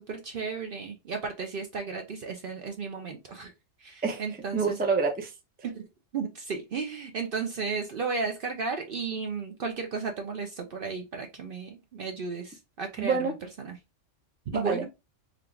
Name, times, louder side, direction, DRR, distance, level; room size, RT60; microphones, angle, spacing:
voice 1, 0.0-3.5 3.8-4.8 5.6-5.9 6.1-13.8 14.5-14.9, right 5 dB, 55° right, 0.6 m, -34 dB
voice 2, 4.5-5.3 13.0-13.3 14.5-14.9, right 4 dB, 15° right, 0.4 m, -27 dB
3.7 x 2.3 x 3.2 m
omnidirectional pair, 1.3 m